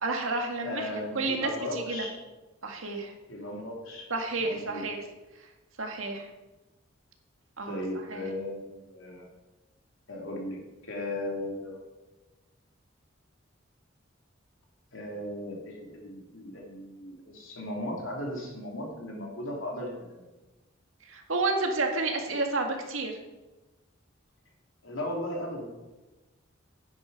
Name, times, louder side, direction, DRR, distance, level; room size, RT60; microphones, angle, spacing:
voice 1, 0.0-2.1 2.6-3.1 4.1-5.0 5.8-6.3 7.6-7.8 8.1-8.2 21.1-23.2, right 3 dB, 90° right, 3 dB, 1.9 m, -30 dB
voice 2, 0.6-2.1 3.3-4.1 4.4-4.8 7.7-9.3 10.1-11.8 14.9-20.3 24.8-25.7, left 1 dB, 75° left, -1 dB, 3.2 m, -36 dB
9.8 x 9.7 x 5.2 m, 1.1 s
head